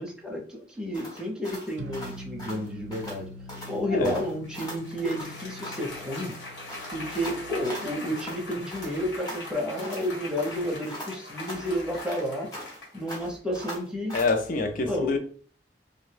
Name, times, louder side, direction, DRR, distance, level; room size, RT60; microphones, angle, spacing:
voice 1, 0.0-3.3 3.7-6.3 6.9-12.5 12.9-14.2 14.8-15.2, equal, 5° right, 0.6 m, -31 dB
sound 1, 0.9-3.2 3.5-3.8 4.0-5.9 6.2-8.4 8.7-10.1 10.4-12.8 13.1-14.4, equal, 20° left, 1.0 m, -40 dB
sound 2, 1.8-8.6, equal, 85° right, 0.4 m, -45 dB
voice 2, 3.8-4.1 14.1-15.2, left 3 dB, 50° left, 0.4 m, -26 dB
Applause, 4.4-13.4, left 2 dB, 75° left, 1.2 m, -42 dB
2.6 x 2.1 x 3.2 m
head